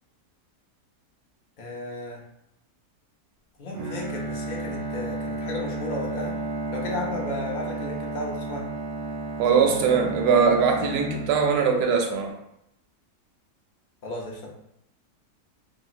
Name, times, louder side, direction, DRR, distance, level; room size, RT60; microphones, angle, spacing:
voice 1, 1.6-2.2 3.6-6.4 6.7-8.6 14.0-14.5, left 2 dB, 50° left, -2 dB, 0.5 m, -34 dB
Bowed string instrument, 3.7-11.9, right 2 dB, 65° right, 0.9 m, -32 dB
voice 2, 9.4-12.3, right 6 dB, 85° right, 3 dB, 1.1 m, -21 dB
3.0 x 2.8 x 2.4 m, 0.80 s
omnidirectional pair, 1.6 m